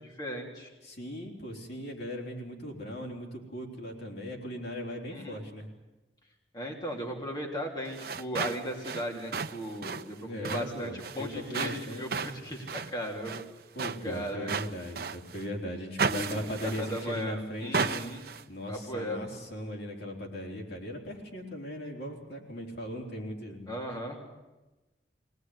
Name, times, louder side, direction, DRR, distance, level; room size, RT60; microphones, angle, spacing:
voice 1, 0.2-0.7 5.1-5.4 6.5-13.4 14.0-14.5 16.0-18.3 18.7-19.2 23.7-24.2, equal, 25° left, 0 dB, 3.1 m, -36 dB
voice 2, 0.8-5.7 10.3-12.1 13.7-18.0 18.5-23.7, equal, 65° left, 0 dB, 4.0 m, -38 dB
sound 1, 7.9-15.5 16.0-17.2 17.7-18.4, right 5 dB, 60° right, 0.8 m, -35 dB
23.0 x 18.5 x 9.7 m, 1.1 s
head